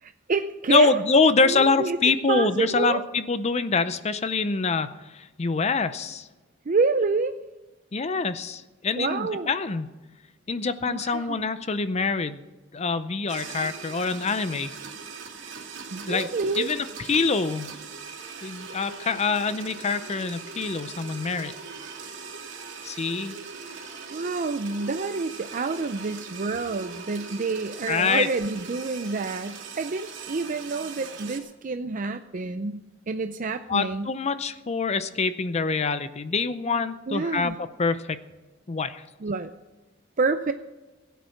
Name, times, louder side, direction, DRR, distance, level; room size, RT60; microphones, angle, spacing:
voice 1, 0.0-1.0 1.4-3.0 6.7-7.3 9.0-9.5 10.9-11.5 15.9-16.7 24.1-32.8 33.1-34.1 37.1-37.5 39.2-39.5 40.2-40.5, right 4 dB, 45° right, 9 dB, 0.5 m, -28 dB
voice 2, 0.7-6.3 7.9-9.9 10.5-12.4 12.7-14.7 16.1-16.3 16.6-17.8 18.4-21.5 22.8-23.4 27.9-28.3 33.7-38.2 38.7-39.0, left 4 dB, 35° left, 12 dB, 0.5 m, -25 dB
sound 1, 13.3-31.4, right 5 dB, 70° right, 2.6 m, -40 dB
16.5 x 9.3 x 5.7 m, 1.2 s
head